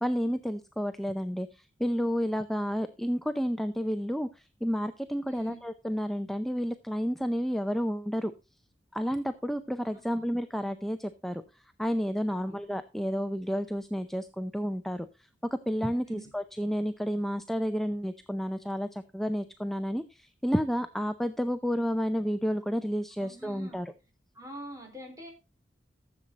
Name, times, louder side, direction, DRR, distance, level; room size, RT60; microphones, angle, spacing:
voice 1, 0.0-8.3 8.9-11.4 11.8-15.1 15.5-23.9, equal, ahead, 9 dB, 0.5 m, -31 dB
voice 2, 5.3-5.6 10.1-10.3 12.3-12.6 16.1-16.3 23.2-23.8 24.3-25.3, right 1 dB, 20° right, 1 dB, 4.3 m, -45 dB
14.0 x 7.5 x 4.0 m, 0.28 s
head